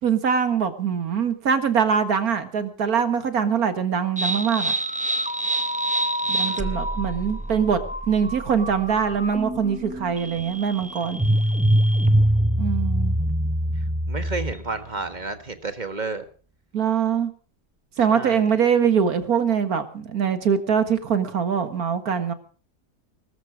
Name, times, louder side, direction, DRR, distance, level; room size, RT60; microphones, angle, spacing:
voice 1, 0.0-4.7 6.3-7.8 8.1-11.2 12.6-13.2 16.7-17.3 18.0-22.3, right 7 dB, 65° right, 10 dB, 2.1 m, -23 dB
sound 1, 4.2-14.8, right 1 dB, 10° right, 0.3 m, -24 dB
voice 2, 6.2-6.8 14.1-16.2 18.1-18.5, right 3 dB, 30° right, 9 dB, 1.5 m, -32 dB
20.0 x 13.5 x 4.9 m, 0.40 s
omnidirectional pair, 1.7 m